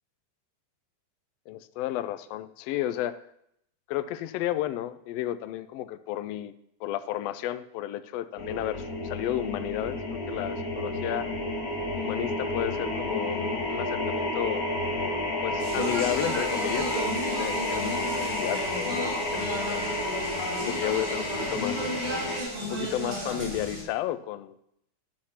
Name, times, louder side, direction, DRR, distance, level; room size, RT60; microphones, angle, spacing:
voice 1, 1.5-3.2 3.9-6.5 6.8-11.3 12.0-14.7 15.4-17.0 17.3-20.0 20.6-21.9 22.6-24.5, left 13 dB, 85° left, 13 dB, 1.4 m, -32 dB
sound 1, 8.4-22.4, left 1 dB, 45° left, 1.2 m, -31 dB
Speech, 15.6-23.8, equal, 60° right, 4.7 m, -34 dB
11.5 x 6.5 x 5.7 m, 0.74 s
omnidirectional pair, 3.5 m